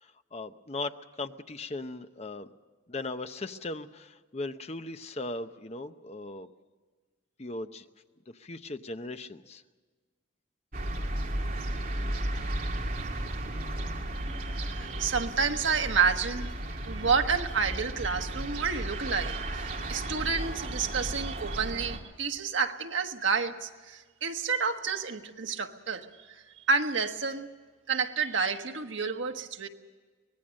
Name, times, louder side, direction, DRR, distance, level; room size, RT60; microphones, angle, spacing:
voice 1, 0.0-2.5 2.9-6.5 7.4-7.8 8.4-9.6, left 2 dB, 35° left, 0.8 m, -38 dB
sound 1, 10.7-22.0, right 1 dB, 45° right, 2.5 m, -34 dB
voice 2, 14.1-27.5 27.9-29.7, right 5 dB, 75° right, 1.4 m, -30 dB
24.5 x 19.5 x 6.4 m
head